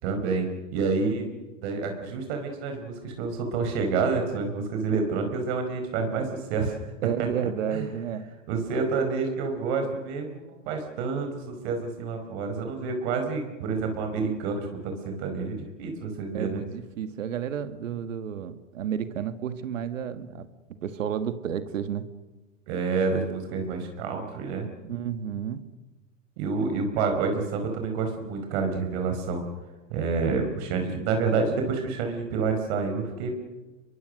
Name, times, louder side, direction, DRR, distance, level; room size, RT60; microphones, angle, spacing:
voice 1, 0.0-1.3 1.6-6.9 7.2-7.9 8.5-16.6 22.7-24.7 26.4-29.4 29.9-33.3, right 4 dB, 55° right, 5 dB, 4.8 m, -28 dB
voice 2, 7.0-8.3 16.3-20.5 20.8-22.1 24.8-25.6, right 8 dB, 80° right, 11 dB, 1.8 m, -31 dB
25.5 x 23.0 x 6.5 m, 1.2 s
hypercardioid pair, 115°, 38 cm